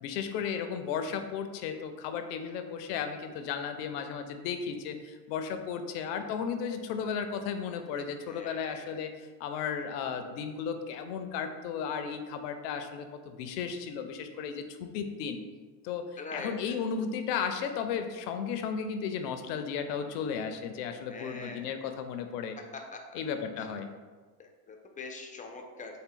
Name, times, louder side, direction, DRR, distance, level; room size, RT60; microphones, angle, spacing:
voice 1, 0.0-15.4 15.8-22.6 23.1-23.9, left 6 dB, 85° left, 7 dB, 0.6 m, -34 dB
voice 2, 8.3-9.0 16.2-16.8 21.1-21.7 22.9-23.2 23.6-23.7 24.4-26.0, left 3 dB, 15° left, 3 dB, 0.4 m, -43 dB
4.3 x 2.2 x 3.6 m, 1.4 s
supercardioid pair, 85°, 47 cm